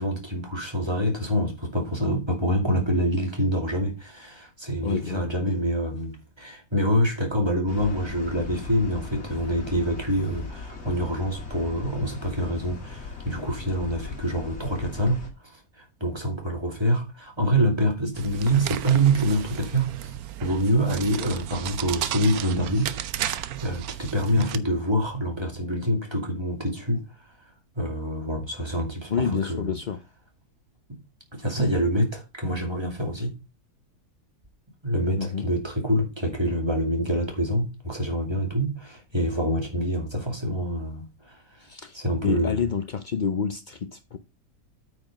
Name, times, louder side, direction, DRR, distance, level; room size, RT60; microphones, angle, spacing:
voice 1, 0.0-29.8 30.9-31.0 31.3-33.3 34.8-41.7 41.9-42.7, equal, 15° right, 2.5 m, -26 dB
voice 2, 4.8-5.6 10.2-10.3 29.1-30.0 35.2-35.5 41.6-44.2, left 6 dB, 75° left, 0.4 m, -29 dB
sound 1, 7.7-15.3, left 5 dB, 45° left, 2.3 m, -38 dB
sound 2, 18.1-24.6, right 11 dB, 70° right, 1.1 m, -33 dB
8.7 x 5.2 x 5.2 m
omnidirectional pair, 1.7 m